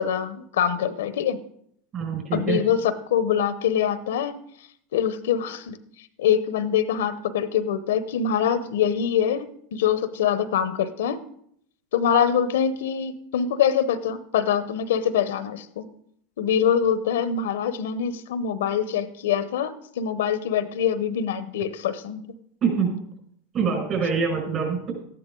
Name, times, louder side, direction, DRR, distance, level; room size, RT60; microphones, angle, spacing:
voice 1, 0.0-1.4 2.3-4.4 4.9-5.8 6.2-9.5 9.7-11.2 11.9-15.9 16.4-22.2, left 8 dB, 85° left, 14 dB, 0.8 m, -24 dB
voice 2, 1.9-2.6 22.6-23.0 23.5-24.9, right 5 dB, 40° right, 1 dB, 5.6 m, -25 dB
13.0 x 10.5 x 3.8 m, 0.68 s
supercardioid pair, 115°, 0 cm